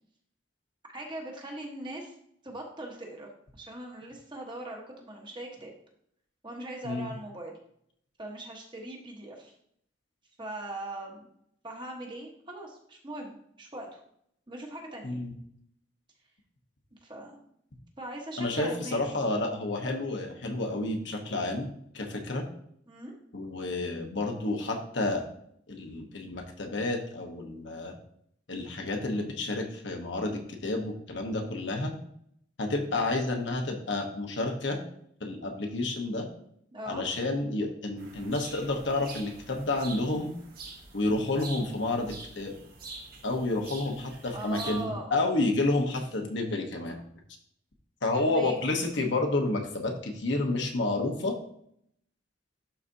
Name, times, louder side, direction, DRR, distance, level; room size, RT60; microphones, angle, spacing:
voice 1, 0.9-2.1 2.4-3.3 3.6-5.7 6.4-7.5 8.2-9.5 10.4-11.2 11.6-14.0 14.5-15.2 17.0-17.4 18.0-19.0 22.9-23.1 36.7-37.0 44.2-45.1 48.1-48.6, right 1 dB, 25° right, 0 dB, 1.2 m, -40 dB
voice 2, 18.4-22.4 23.3-25.2 25.7-27.9 28.5-31.9 32.6-34.8 35.2-36.2 36.8-40.3 40.9-42.5 43.2-47.0 48.0-51.3, left 2 dB, 70° left, 2 dB, 1.1 m, -30 dB
sound 1, 38.0-44.8, right 3 dB, 50° right, 1.3 m, -45 dB
11.5 x 4.2 x 2.7 m, 0.69 s
head